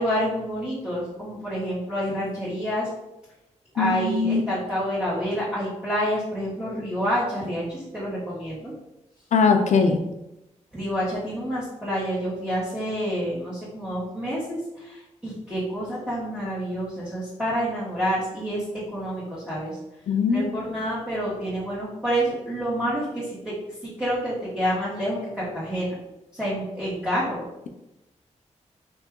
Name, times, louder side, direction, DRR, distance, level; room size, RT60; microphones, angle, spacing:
voice 1, 0.0-2.9 3.7-8.7 10.7-19.8 20.3-23.5 23.8-26.0 26.3-27.4, equal, 5° right, -11 dB, 1.3 m, -28 dB
voice 2, 3.8-4.6 9.3-10.0 20.1-20.6, left 4 dB, 70° left, 4 dB, 0.5 m, -21 dB
4.4 x 2.7 x 3.6 m, 0.93 s
wide cardioid pair, 140°, 12 cm